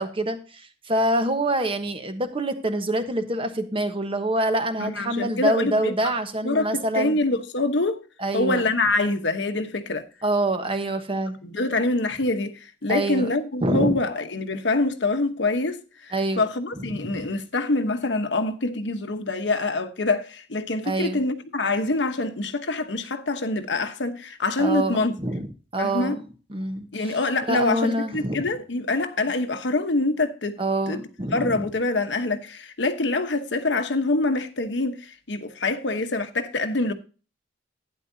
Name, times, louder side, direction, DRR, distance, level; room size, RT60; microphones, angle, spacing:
voice 1, 0.0-7.2 8.2-8.6 10.2-11.4 12.9-13.3 13.6-14.0 16.1-16.5 16.8-17.3 20.8-21.2 24.6-25.5 25.7-26.2 26.5-27.2 27.5-28.4 30.6-31.7, right 1 dB, 30° right, 1.1 m, -26 dB
voice 2, 4.8-6.1 6.4-6.7 6.9-8.0 8.3-10.0 11.4-25.1 25.8-26.2 26.9-30.6 30.9-31.0 31.3-36.9, left 2 dB, 70° left, 1.1 m, -25 dB
12.0 x 9.5 x 2.7 m
head